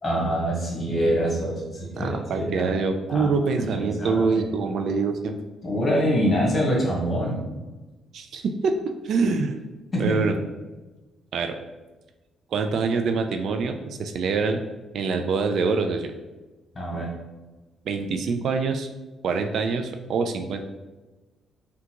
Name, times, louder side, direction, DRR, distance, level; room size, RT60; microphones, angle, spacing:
voice 1, 0.0-2.8 3.1-4.3 5.6-7.4 9.9-10.2 16.7-17.1, equal, 35° left, -3 dB, 1.3 m, -25 dB
voice 2, 1.9-5.4 8.1-9.6 10.0-10.4 11.3-11.6 12.5-14.6 14.9-16.1 17.9-18.9 19.2-20.6, right 4 dB, 65° right, 6 dB, 0.3 m, -25 dB
3.6 x 2.3 x 2.9 m, 1.2 s
cardioid pair, 90°, 0 cm